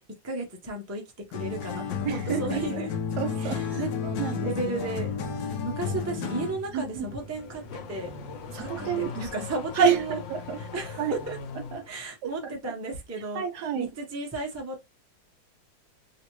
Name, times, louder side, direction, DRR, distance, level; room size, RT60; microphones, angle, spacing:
voice 1, 0.2-1.0 1.3-2.9 3.4-3.9 4.4-5.1 5.6-8.1 8.6-10.2 10.6-11.4 11.9-13.4 13.8-14.8, right 2 dB, 20° right, 0.3 m, -34 dB
sound 1, 1.3-6.7, left 6 dB, 70° left, 1.1 m, -32 dB
voice 2, 2.0-2.6 3.2-4.5 6.7-7.1 8.5-9.3 9.7-10.6 11.0-11.2 11.7-11.9 12.2-12.7 13.3-13.9, right 7 dB, 75° right, 1.0 m, -29 dB
sound 2, 3.1-10.0, right 1 dB, 40° left, 1.2 m, -47 dB
Car / Accelerating revving vroom, 7.0-12.0, left 6 dB, 85° left, 1.4 m, -40 dB
3.1 x 2.8 x 3.0 m
omnidirectional pair, 2.0 m